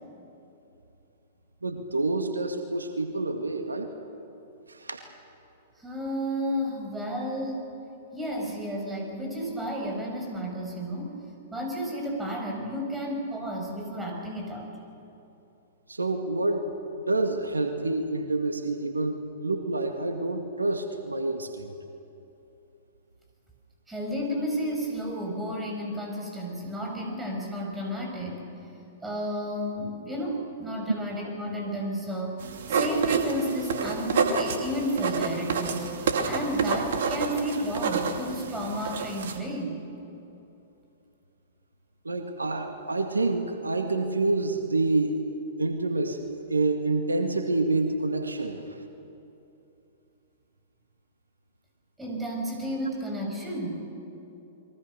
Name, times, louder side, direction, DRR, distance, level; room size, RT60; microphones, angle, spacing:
voice 1, 1.6-3.9 4.7-5.1 15.9-16.6 17.1-21.7 42.0-48.6, right 2 dB, 85° right, 5 dB, 2.0 m, -28 dB
voice 2, 5.8-7.7 8.1-11.2 11.5-14.7 23.9-28.4 29.0-32.4 32.7-35.9 36.3-39.8 52.0-53.8, equal, 10° right, 0 dB, 7.2 m, -32 dB
sound 1, 32.4-39.4, right 5 dB, 60° right, 2.6 m, -29 dB
30.0 x 23.0 x 6.7 m, 2.9 s
figure-of-eight pair, 110°, 0 cm